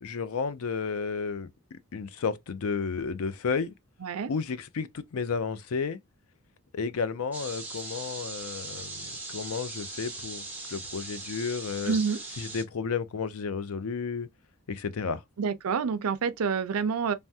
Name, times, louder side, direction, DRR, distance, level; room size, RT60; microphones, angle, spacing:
voice 1, 0.0-3.7 4.3-6.0 6.7-12.0 12.4-14.3 14.7-15.2, left 5 dB, 65° left, 0.4 m, -32 dB
sound 1, 7.3-12.6, right 2 dB, 10° right, 0.9 m, -39 dB
voice 2, 11.9-12.2 15.4-17.1, right 5 dB, 70° right, 0.5 m, -27 dB
3.4 x 2.1 x 2.6 m
head